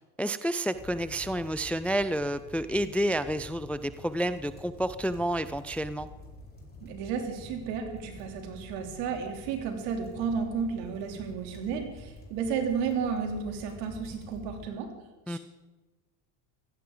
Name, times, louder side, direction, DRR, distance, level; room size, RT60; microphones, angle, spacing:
voice 1, 0.2-6.1 15.3-15.4, right 1 dB, 5° left, 14 dB, 0.4 m, -30 dB
sound 1, 0.7-14.7, left 1 dB, 20° left, 4.8 m, -48 dB
voice 2, 6.8-14.9 15.3-15.4, right 6 dB, 75° right, 4 dB, 3.2 m, -32 dB
16.5 x 15.0 x 3.9 m, 1.2 s
supercardioid pair, 95°, 49 cm